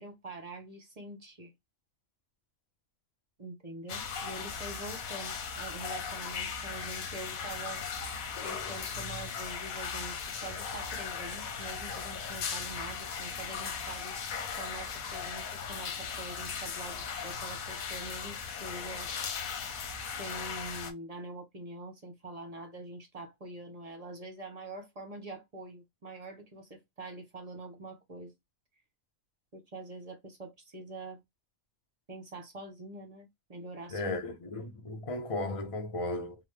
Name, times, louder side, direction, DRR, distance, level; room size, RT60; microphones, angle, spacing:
voice 1, 0.0-1.5 3.4-7.8 8.4-14.2 14.6-19.1 20.0-28.3 29.5-31.2 32.1-34.1, right 2 dB, 35° right, 0.7 m, -45 dB
sound 1, 3.9-20.9, left 6 dB, 85° left, 1.1 m, -38 dB
voice 2, 33.9-36.4, left 2 dB, 65° left, 0.3 m, -35 dB
3.3 x 2.0 x 3.1 m
omnidirectional pair, 1.4 m